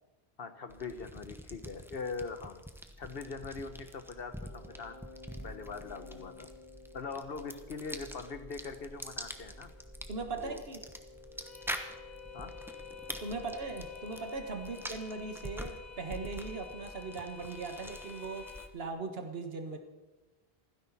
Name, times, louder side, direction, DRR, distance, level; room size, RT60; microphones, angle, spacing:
voice 1, 0.4-2.6 3.0-5.0 5.4-6.5 6.9-9.7 10.4-10.6 12.3-12.6, left 4 dB, 70° left, 10 dB, 1.3 m, -42 dB
sound 1, 0.7-18.9, equal, ahead, 1.0 m, -46 dB
sound 2, 4.3-15.9, left 4 dB, 30° left, 2.7 m, -53 dB
sound 3, 9.7-18.7, left 6 dB, 45° left, 1.0 m, -51 dB
voice 2, 10.1-10.8 13.2-19.8, right 3 dB, 70° right, 5 dB, 1.7 m, -39 dB
28.0 x 10.5 x 4.2 m, 1.1 s
omnidirectional pair, 1.0 m